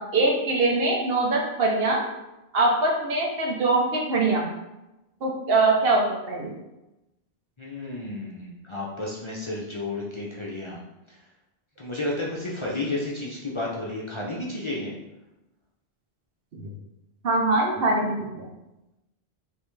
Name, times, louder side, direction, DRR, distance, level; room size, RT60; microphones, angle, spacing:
voice 1, 0.0-2.0 2.5-4.5 5.2-6.6 16.5-16.6 17.2-18.5, right 2 dB, 65° right, -1 dB, 1.0 m, -23 dB
voice 2, 7.6-10.8 11.1-11.2 11.8-14.9, left 2 dB, 35° left, -4 dB, 0.6 m, -32 dB
5.3 x 2.9 x 3.2 m, 0.97 s
omnidirectional pair, 1.1 m